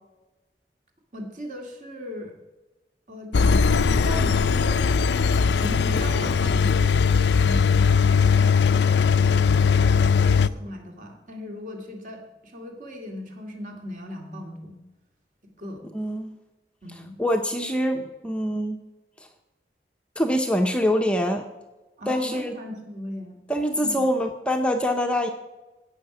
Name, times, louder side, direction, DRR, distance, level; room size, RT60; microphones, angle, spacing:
voice 1, 1.1-2.4 3.1-3.3 3.8-4.8 5.6-6.7 10.3-14.8 15.4-15.8 16.8-17.2 22.0-23.4 23.8-24.0, equal, 45° right, 2 dB, 2.3 m, -38 dB
Engine, 3.3-10.5, left 5 dB, 80° left, 0.4 m, -19 dB
voice 2, 15.9-16.3 17.2-18.8 20.2-21.4 22.1-22.6 23.5-25.3, equal, 5° left, 4 dB, 0.6 m, -24 dB
16.5 x 6.4 x 6.1 m, 1.1 s
head